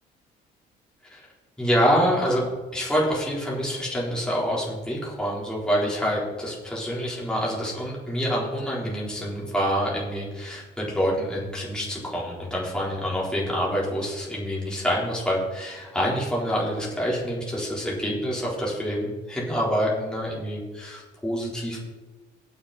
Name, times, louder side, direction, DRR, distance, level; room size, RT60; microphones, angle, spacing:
voice 1, 1.6-2.5 2.7-21.8, equal, 5° left, -5 dB, 4.2 m, -26 dB
18.5 x 6.9 x 4.4 m, 1.2 s
cardioid pair, 110°, 17 cm